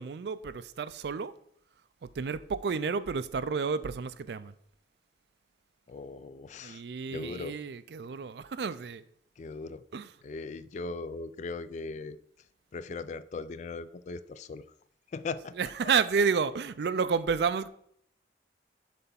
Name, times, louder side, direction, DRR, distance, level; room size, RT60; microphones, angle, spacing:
voice 1, 0.0-1.3 2.2-4.5 6.6-9.0 9.9-10.1 15.6-17.7, right 5 dB, 65° right, 0.4 m, -30 dB
voice 2, 5.9-6.8 7.1-7.6 9.4-9.8 10.2-12.2 12.7-14.6 15.1-15.5, left 3 dB, 40° left, 0.3 m, -39 dB
7.5 x 3.4 x 5.7 m
head